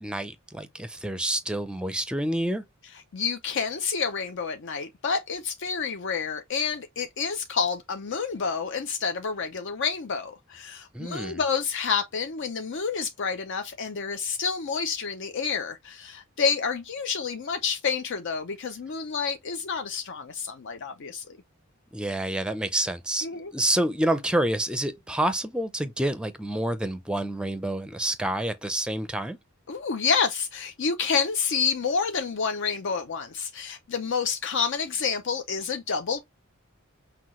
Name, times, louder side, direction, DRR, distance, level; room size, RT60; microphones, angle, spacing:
voice 1, 0.0-2.6 10.9-11.4 21.9-29.4, right 1 dB, 5° right, 0.5 m, -28 dB
voice 2, 3.1-21.2 23.2-23.5 29.7-36.2, left 5 dB, 60° left, 0.6 m, -29 dB
5.8 x 2.3 x 3.0 m
head